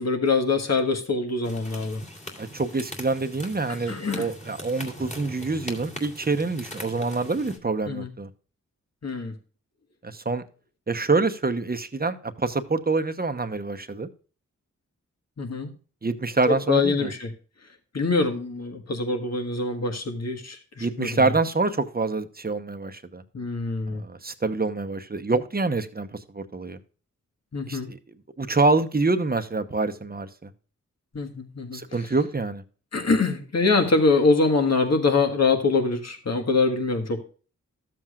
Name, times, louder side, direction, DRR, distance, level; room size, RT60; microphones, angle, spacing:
voice 1, 0.0-2.0 3.9-4.3 7.9-8.1 9.0-9.3 15.4-15.7 16.5-17.3 17.9-21.2 23.3-24.0 27.5-27.9 31.1-32.1 32.9-37.3, left 3 dB, 55° left, 5 dB, 1.6 m, -24 dB
sound 1, 1.4-7.6, left 1 dB, 25° left, 2.3 m, -40 dB
voice 2, 2.4-8.3 10.0-10.4 10.9-14.1 16.0-17.1 20.8-23.2 23.9-26.8 27.7-28.0 28.4-30.5 31.7-32.6, right 3 dB, 30° right, 9 dB, 0.9 m, -26 dB
13.5 x 7.5 x 2.4 m, 0.38 s
wide cardioid pair, 70°, 31 cm